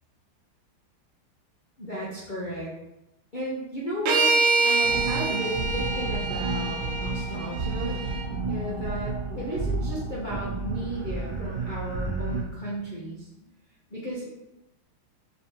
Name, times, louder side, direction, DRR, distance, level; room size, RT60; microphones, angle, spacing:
voice 1, 1.8-2.7 3.3-4.3 4.6-8.1 8.5-13.5 13.9-14.6, equal, 80° left, -7 dB, 0.4 m, -34 dB
sound 1, 4.1-8.2, right 3 dB, 90° right, 1.6 m, -26 dB
sound 2, 4.8-12.4, right 3 dB, 65° right, 1.7 m, -31 dB
4.9 x 3.6 x 2.9 m, 0.89 s
omnidirectional pair, 2.3 m